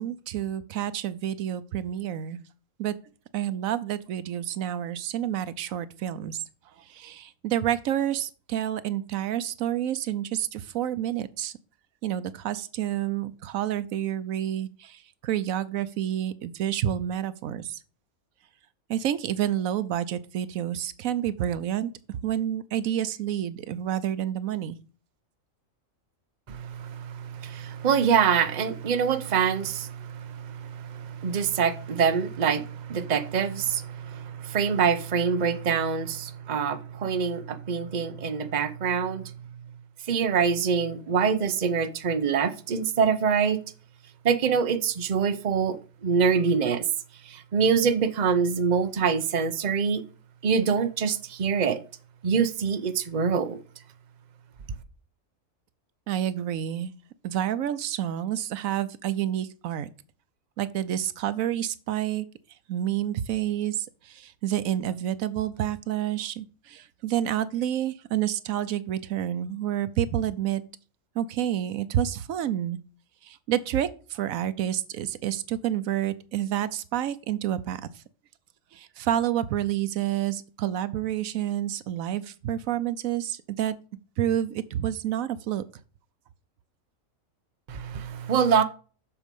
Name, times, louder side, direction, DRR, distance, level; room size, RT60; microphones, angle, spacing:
voice 1, 0.0-2.4 2.8-3.0 3.3-6.4 6.8-11.5 12.0-17.8 18.9-24.8 56.1-56.9 57.2-59.9 60.6-62.3 62.7-70.6 71.1-72.8 73.2-78.0 78.7-83.8 84.2-85.6, right 11 dB, 85° right, 1.1 m, -29 dB
voice 2, 26.5-39.3 40.1-43.6 44.2-46.8 47.3-50.0 50.4-51.8 52.2-53.6 87.7-88.6, right 6 dB, 40° right, 0.8 m, -25 dB
7.4 x 6.4 x 5.3 m
omnidirectional pair, 1.4 m